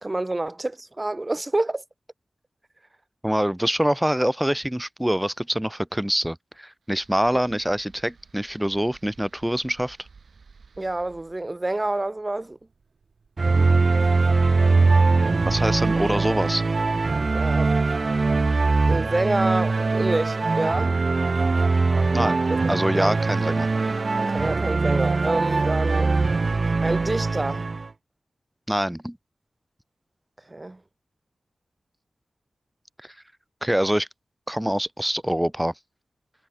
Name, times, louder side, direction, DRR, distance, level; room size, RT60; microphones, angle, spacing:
voice 1, 0.0-1.8 10.8-12.6 17.3-17.7 18.9-20.9 22.1-23.2 24.2-26.2 26.8-27.7 30.5-30.8, right 2 dB, 30° right, 1.1 m, -28 dB
voice 2, 3.2-10.0 15.4-16.6 22.1-22.4 22.7-23.7 28.7-29.2 33.0-33.1 33.6-34.1 34.5-35.7, equal, 5° right, 0.7 m, -25 dB
sound 1, 6.8-14.0, right 5 dB, 75° right, 6.7 m, -55 dB
sound 2, 13.4-27.9, right 3 dB, 55° right, 0.5 m, -22 dB
cardioid pair, 50°, 0 cm